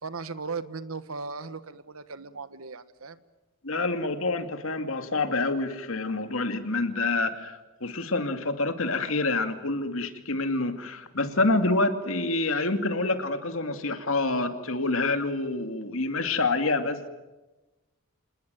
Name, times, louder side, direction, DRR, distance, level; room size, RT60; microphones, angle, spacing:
voice 1, 0.0-3.2, right 4 dB, 80° right, 13 dB, 1.3 m, -37 dB
voice 2, 3.6-17.1, left 2 dB, 70° left, 8 dB, 2.5 m, -27 dB
27.5 x 20.0 x 9.2 m, 1.1 s
head